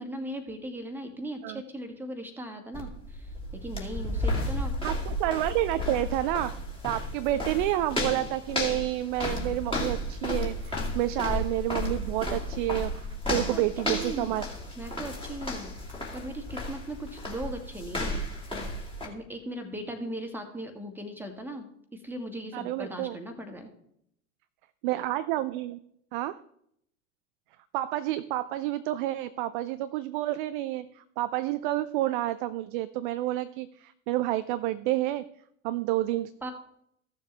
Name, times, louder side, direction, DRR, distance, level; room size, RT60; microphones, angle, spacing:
voice 1, 0.0-4.7 13.2-14.5 14.8-18.2 19.0-21.7 21.9-23.7 36.4-36.5, right 1 dB, 5° right, 4 dB, 1.7 m, -38 dB
sound 1, 2.7-19.1, left 1 dB, 10° left, 2.5 m, -33 dB
voice 2, 4.8-6.6 6.8-14.5 22.5-23.2 24.8-25.8 26.1-26.4 27.7-35.3 35.6-36.5, right 15 dB, 40° right, 13 dB, 0.4 m, -29 dB
15.0 x 6.8 x 3.4 m, 0.72 s
figure-of-eight pair, 80°, 42 cm